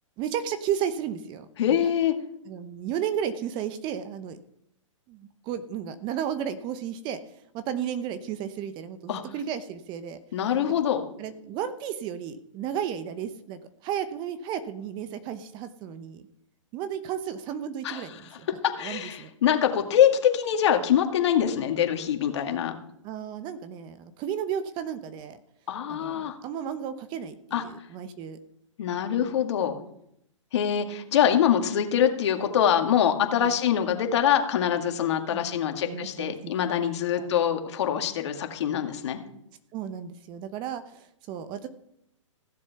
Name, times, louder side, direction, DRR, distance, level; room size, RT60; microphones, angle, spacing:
voice 1, 0.2-1.8 2.5-4.4 5.1-7.2 7.5-10.2 11.2-16.2 16.7-18.5 18.8-19.3 23.0-25.4 25.9-28.4 33.4-33.6 35.3-36.4 37.2-37.3 39.7-41.7, right 9 dB, 30° right, 11 dB, 0.9 m, -33 dB
voice 2, 1.6-2.1 9.1-9.2 10.3-11.1 17.8-18.0 18.8-22.8 25.7-26.3 27.5-27.6 28.8-29.8 30.5-39.2, left 9 dB, 60° left, 4 dB, 2.1 m, -24 dB
15.5 x 7.5 x 5.8 m, 0.76 s
hypercardioid pair, 135°, 17 cm